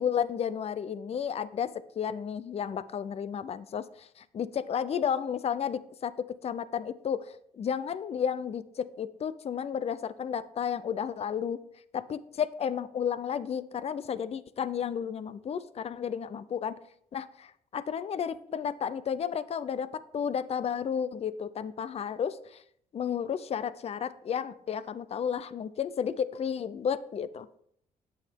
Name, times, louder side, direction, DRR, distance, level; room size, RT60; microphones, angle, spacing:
voice 1, 0.0-11.6 11.9-16.7 17.1-22.6 22.9-27.5, left 8 dB, 40° left, 16 dB, 0.5 m, -32 dB
9.0 x 7.8 x 3.5 m, 0.70 s
cardioid pair, 90°, 15 cm